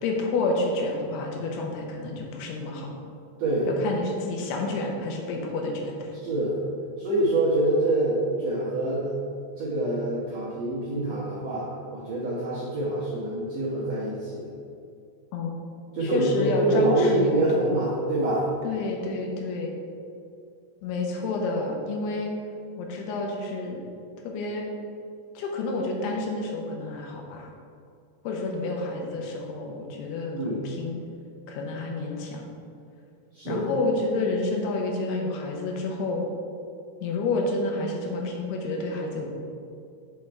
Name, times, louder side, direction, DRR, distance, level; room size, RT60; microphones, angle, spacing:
voice 1, 0.0-2.9 3.8-6.1 15.3-15.6 16.0-17.7 18.6-19.7 20.8-22.3 22.8-23.8 24.2-24.7 25.4-27.5 28.2-31.0 31.5-32.4 33.5-36.2 37.0-39.3, left 3 dB, 80° left, 1 dB, 2.8 m, -29 dB
voice 2, 3.4-3.7 4.1-4.2 6.2-6.6 7.0-9.1 9.6-14.5 15.9-18.4 30.3-30.7 33.3-33.7, right 1 dB, 70° right, -8 dB, 1.6 m, -25 dB
7.6 x 4.5 x 4.6 m, 2.4 s
omnidirectional pair, 4.7 m